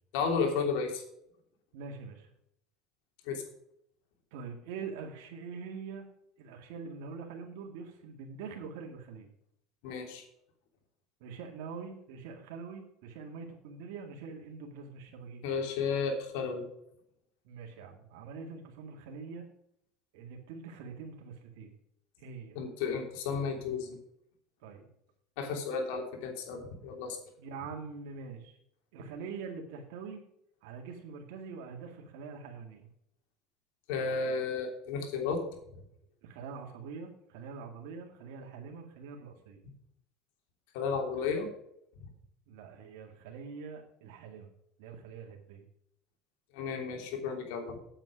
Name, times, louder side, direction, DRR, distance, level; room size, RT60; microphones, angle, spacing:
voice 1, 0.1-1.0 3.3-3.4 9.8-10.2 15.4-16.6 22.5-24.0 25.4-27.2 33.9-35.4 40.7-41.5 46.5-47.8, left 5 dB, 80° left, 3 dB, 3.1 m, -33 dB
voice 2, 1.7-2.3 4.3-6.1 6.4-9.3 11.2-15.4 17.4-19.4 20.1-21.7 22.2-22.5 24.6-24.8 27.4-28.6 28.9-30.2 30.6-32.9 36.2-39.6 42.5-44.5 44.8-45.7, right 5 dB, 80° right, 1 dB, 2.1 m, -44 dB
8.9 x 8.4 x 5.2 m, 0.75 s
supercardioid pair, 125°, 0 cm